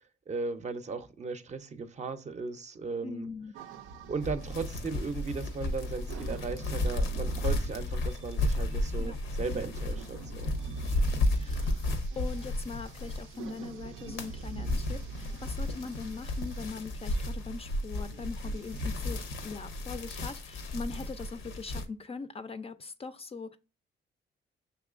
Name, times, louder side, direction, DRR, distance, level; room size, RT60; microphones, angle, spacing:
voice 1, 0.0-3.3 4.1-10.5, right 4 dB, 35° right, 0.5 m, -37 dB
voice 2, 3.0-3.5 9.0-9.2 11.4-23.6, left 4 dB, 30° left, 0.3 m, -41 dB
sound 1, 3.5-5.7 6.1-17.3 18.1-19.2, right 4 dB, 90° right, 0.5 m, -44 dB
sound 2, 4.2-13.6 13.9-21.8, left 1 dB, 90° left, 0.7 m, -33 dB
5.9 x 3.0 x 2.4 m
cardioid pair, 90°, 20 cm